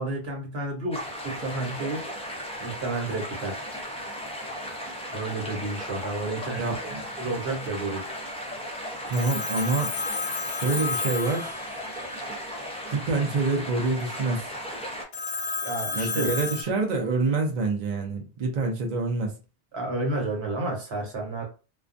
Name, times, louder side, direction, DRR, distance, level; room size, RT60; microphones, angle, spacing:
voice 1, 0.0-2.1 2.6-3.6 5.1-6.8 7.2-8.0 15.6-16.3 19.7-21.4, right 2 dB, 70° right, 1.1 m, -31 dB
sound 1, 0.9-15.0, equal, 10° left, 0.4 m, -36 dB
voice 2, 6.5-7.0 9.1-9.9 10.5-11.5 12.9-14.5 16.0-19.3, right 3 dB, 50° right, 0.6 m, -26 dB
Telephone, 9.1-12.2 15.1-16.6, left 4 dB, 70° left, 0.8 m, -31 dB
2.3 x 2.2 x 2.5 m
omnidirectional pair, 1.1 m